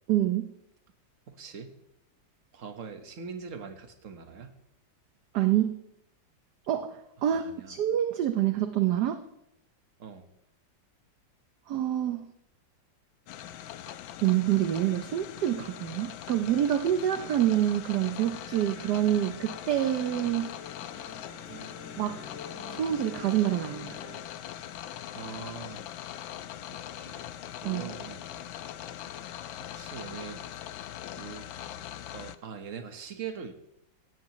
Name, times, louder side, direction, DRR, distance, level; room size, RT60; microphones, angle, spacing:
voice 1, 0.1-0.5 5.3-5.8 6.7-9.2 11.7-12.3 14.2-20.5 22.0-22.2 22.7-24.0 27.6-27.9, right 11 dB, 65° right, 8 dB, 1.2 m, -27 dB
voice 2, 1.3-1.7 2.5-4.6 7.2-7.8 10.0-10.3 21.5-21.7 25.1-25.9 26.7-28.3 29.7-30.4 31.1-31.5 32.1-33.5, right 6 dB, 45° right, 6 dB, 1.5 m, -42 dB
sound 1, 13.3-32.4, left 11 dB, 85° left, 1.4 m, -41 dB
Musical instrument, 18.1-24.2, left 3 dB, 40° left, 7.8 m, -48 dB
17.0 x 16.0 x 3.1 m, 0.84 s
omnidirectional pair, 2.1 m